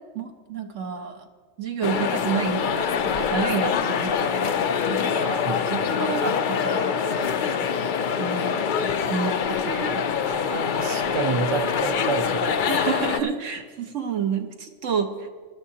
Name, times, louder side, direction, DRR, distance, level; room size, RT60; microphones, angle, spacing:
voice 1, 0.1-1.3 1.6-7.7 8.2-8.6 9.1-10.0 12.7-15.3, right 6 dB, 70° right, 5 dB, 1.3 m, -30 dB
sound 1, 1.8-13.2, left 7 dB, 60° left, 0.5 m, -25 dB
voice 2, 10.2-12.6, right 5 dB, 35° right, 7 dB, 0.5 m, -29 dB
18.5 x 12.5 x 2.8 m, 1.5 s
omnidirectional pair, 1.4 m